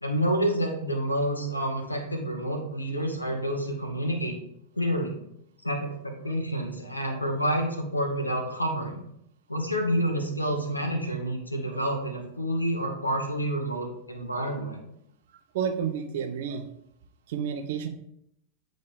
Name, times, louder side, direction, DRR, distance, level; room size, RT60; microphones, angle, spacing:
voice 1, 0.0-4.3 4.7-5.1 5.6-9.0 9.5-14.8, equal, 85° left, 2 dB, 1.1 m, -28 dB
voice 2, 15.5-16.7 17.3-17.9, right 7 dB, 55° right, 8 dB, 0.7 m, -31 dB
8.4 x 3.9 x 3.5 m, 0.75 s
figure-of-eight pair, 90°, 0 cm